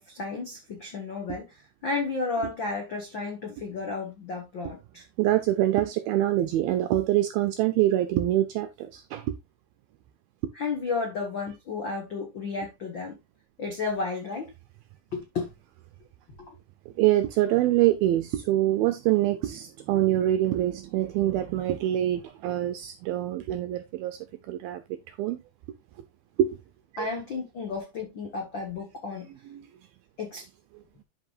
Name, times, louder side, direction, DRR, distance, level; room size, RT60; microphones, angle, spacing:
voice 1, 0.0-5.0 10.5-13.1 13.6-14.5 15.1-15.5 27.0-29.3 30.2-30.5, left 4 dB, 80° left, 1.0 m, -32 dB
voice 2, 5.2-9.3 17.0-24.2 24.5-24.8 25.1-25.4 26.4-26.6 26.9-27.1 29.5-29.6, right 13 dB, 80° right, 2.1 m, -25 dB
12.0 x 5.3 x 2.5 m
omnidirectional pair, 4.9 m